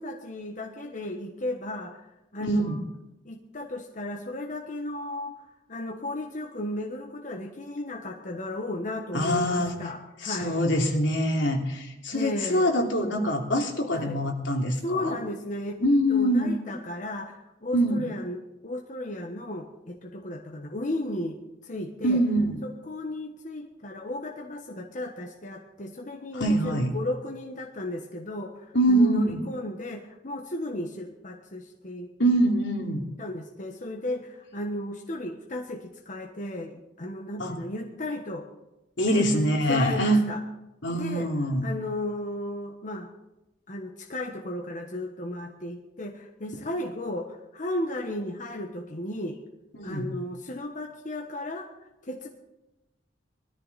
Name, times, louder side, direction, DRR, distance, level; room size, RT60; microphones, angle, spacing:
voice 1, 0.0-2.8 3.2-10.6 12.1-12.7 13.9-14.2 14.8-15.8 16.1-21.4 21.6-22.2 22.6-32.1 33.2-38.5 39.1-39.3 39.7-40.4 40.9-41.3 41.6-43.1 43.7-49.4 49.8-51.7 52.0-52.3, left 1 dB, 45° left, 2 dB, 1.3 m, -35 dB
voice 2, 2.4-2.8 9.1-9.7 10.2-15.2 15.8-16.5 17.7-18.0 22.0-22.6 26.3-26.9 28.7-29.4 32.2-33.1 37.4-37.5 39.0-40.2 40.8-41.7 49.7-50.1, equal, 75° left, 1 dB, 3.0 m, -24 dB
20.5 x 13.5 x 4.2 m, 0.96 s
head